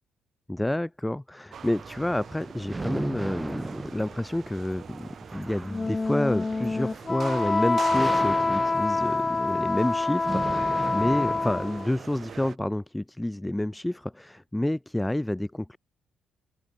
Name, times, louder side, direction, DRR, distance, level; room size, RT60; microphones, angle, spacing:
voice 1, 0.5-15.8, left 1 dB, 10° left, 0.6 m, -29 dB
sound 1, 1.5-12.6, right 7 dB, 55° right, 7.8 m, -43 dB
sound 2, 1.6-12.0, right 3 dB, 20° right, 4.3 m, -38 dB
Wind instrument woodwind instrument, 5.7-11.9, left 3 dB, 25° left, 1.0 m, -26 dB
cardioid pair, 90°, 0 cm